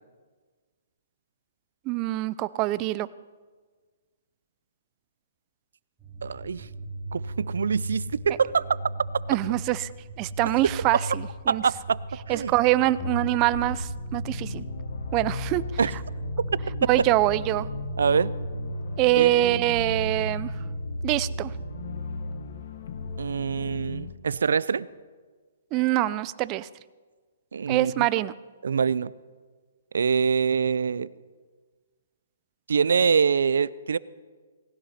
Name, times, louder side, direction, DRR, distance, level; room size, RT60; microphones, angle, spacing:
voice 1, 1.9-3.1 9.3-9.9 10.2-11.6 12.3-14.6 15.1-15.6 16.9-17.7 19.0-20.5 21.0-21.5 25.7-26.7 27.7-28.3, right 16 dB, 30° right, 17 dB, 0.5 m, -24 dB
sound 1, 6.0-22.8, right 1 dB, 10° right, 4.0 m, -36 dB
voice 2, 6.2-6.7 7.1-8.7 11.5-12.0 12.3-12.5 15.8-15.9 18.0-18.3 19.2-19.7 20.0-20.1 23.2-24.9 27.5-28.1 28.6-29.1 29.9-31.1 32.7-34.0, right 6 dB, 75° right, 20 dB, 0.5 m, -25 dB
sound 2, 13.0-24.1, left 4 dB, 60° left, 1.5 m, -37 dB
19.0 x 17.0 x 4.3 m, 1.5 s
hypercardioid pair, 140°, 0 cm